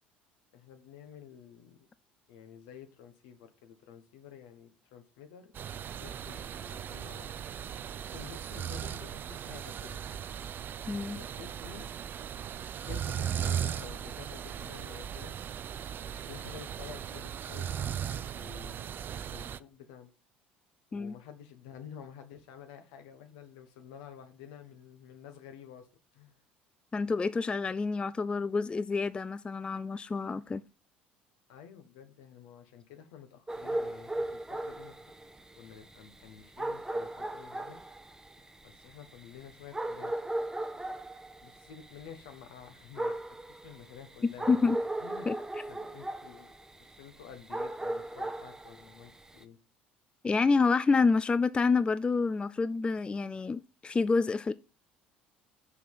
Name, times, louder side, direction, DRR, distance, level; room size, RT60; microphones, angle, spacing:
voice 1, 0.5-1.9 2.3-5.5 6.0-7.3 8.1-10.1 11.1-11.9 12.7-15.4 16.2-20.1 20.9-25.9 26.1-26.4 31.5-35.0 35.6-38.1 38.6-40.1 40.9-41.1 41.4-44.7 45.0-45.3 45.7-46.5 46.8-49.6, left 8 dB, 70° left, 1.4 m, -50 dB
sound 1, 5.5-19.6, right 9 dB, 40° right, 0.4 m, -38 dB
voice 2, 10.9-11.2 20.9-21.1 26.9-30.6 44.5-44.8 45.3-45.4 50.2-54.5, left 4 dB, 20° left, 0.4 m, -28 dB
sound 2, 33.5-49.4, right 1 dB, 10° right, 0.8 m, -37 dB
6.1 x 5.7 x 5.5 m
figure-of-eight pair, 60°, 5 cm